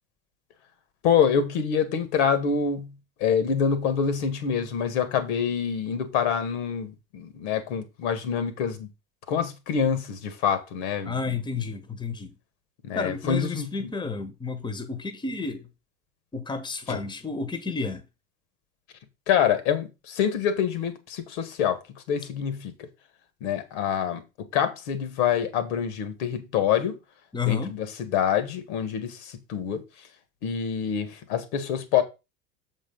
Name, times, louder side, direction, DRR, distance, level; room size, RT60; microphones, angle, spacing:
voice 1, 1.0-2.9 3.2-8.9 9.3-11.3 12.8-13.9 16.9-17.0 19.3-21.8 22.1-22.9 23.4-27.0 27.5-29.8 30.4-32.0, left 7 dB, 55° left, 1.7 m, -26 dB
voice 2, 11.0-12.3 12.9-15.7 16.3-18.0 27.3-27.7, left 4 dB, 10° left, 1.3 m, -31 dB
7.3 x 4.5 x 5.4 m
figure-of-eight pair, 75°, 39 cm